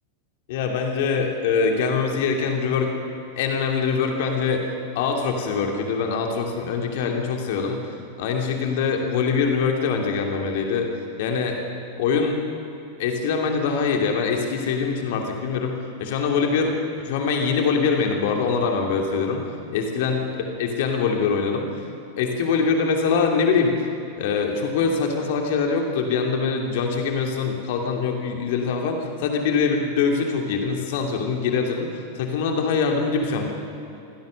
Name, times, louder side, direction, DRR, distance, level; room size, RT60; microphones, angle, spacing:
voice 1, 0.5-2.9 3.4-4.6 4.9-10.9 11.2-11.6 12.0-12.4 13.0-16.7 17.0-19.4 19.7-20.2 20.6-21.9 22.2-23.9 24.2-33.5, left 5 dB, 50° left, 2 dB, 2.7 m, -23 dB
25.5 x 16.5 x 6.7 m, 2.9 s
figure-of-eight pair, 90°, 0 cm